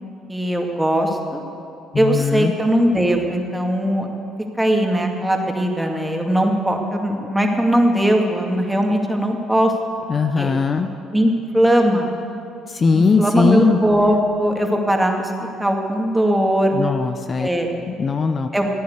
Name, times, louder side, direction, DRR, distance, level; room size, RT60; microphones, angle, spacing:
voice 1, 0.3-1.4 2.0-4.1 4.6-9.7 10.4-10.5 11.1-12.1 12.9-15.3 15.6-16.8 17.4-17.7 18.5-18.7, right 1 dB, 10° right, 1 dB, 2.3 m, -19 dB
voice 2, 1.9-2.5 10.1-10.9 12.7-13.8 16.7-17.5 17.9-18.5, left 5 dB, 40° left, 8 dB, 0.7 m, -19 dB
15.5 x 9.4 x 8.2 m, 2.6 s
hypercardioid pair, 65°, 0 cm